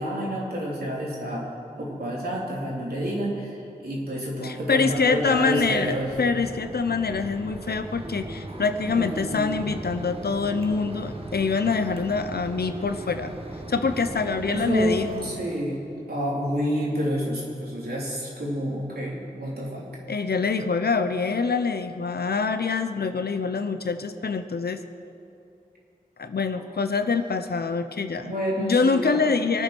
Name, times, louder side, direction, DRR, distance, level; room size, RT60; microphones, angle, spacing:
voice 1, 0.0-1.5 1.8-3.5 3.8-6.1 8.9-9.5 14.5-15.0 15.2-15.8 16.1-19.9 28.2-29.3, equal, 75° right, -4 dB, 3.9 m, -28 dB
voice 2, 4.4-13.3 13.7-15.4 20.1-24.8 26.2-29.6, left 4 dB, 80° left, 9 dB, 0.8 m, -25 dB
Mechanisms, 4.6-15.6, right 1 dB, 35° right, 1.6 m, -38 dB
23.5 x 8.9 x 6.2 m, 2.7 s
wide cardioid pair, 50°, 16 cm